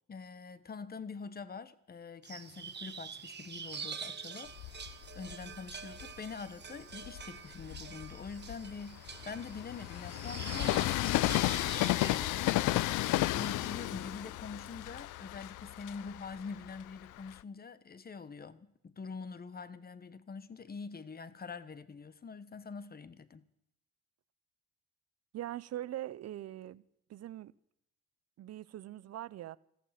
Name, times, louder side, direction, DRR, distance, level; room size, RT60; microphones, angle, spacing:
voice 1, 0.1-23.4, left 5 dB, 30° left, 1.0 m, -45 dB
sound 1, 2.2-13.9, right 6 dB, 35° right, 1.2 m, -47 dB
Train, 4.5-6.2 6.8-17.4, left 17 dB, 85° left, 0.5 m, -34 dB
voice 2, 25.3-26.8 27.1-27.5 28.4-29.6, right 13 dB, 55° right, 0.6 m, -42 dB
14.5 x 14.0 x 5.9 m
cardioid pair, 90°, 30 cm